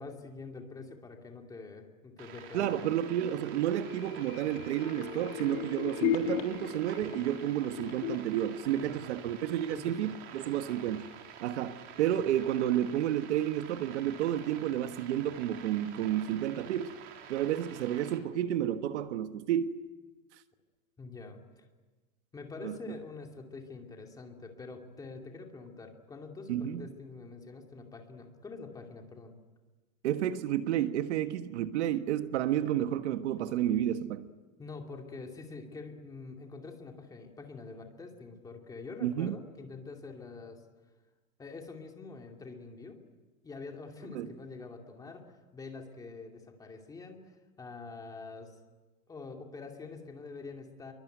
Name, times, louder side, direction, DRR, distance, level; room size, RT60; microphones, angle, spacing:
voice 1, 0.0-2.9 8.7-9.0 9.7-10.1 21.0-21.6 22.3-29.3 33.4-33.5 34.6-40.6 41.4-43.0 43.4-45.2 45.5-48.6 49.1-50.9, left 4 dB, 10° left, 2.5 m, -45 dB
sound 1, 2.2-18.2, right 8 dB, 30° right, 3.1 m, -49 dB
voice 2, 2.5-11.1 11.4-17.0 17.3-19.8 22.6-23.0 26.5-26.9 30.0-34.3 39.0-39.4 44.1-44.3, right 11 dB, 60° right, 1.4 m, -31 dB
sound 2, 3.8-9.5 9.9-10.0, left 11 dB, 45° left, 3.3 m, -37 dB
27.5 x 23.5 x 9.2 m
supercardioid pair, 170°, 40 cm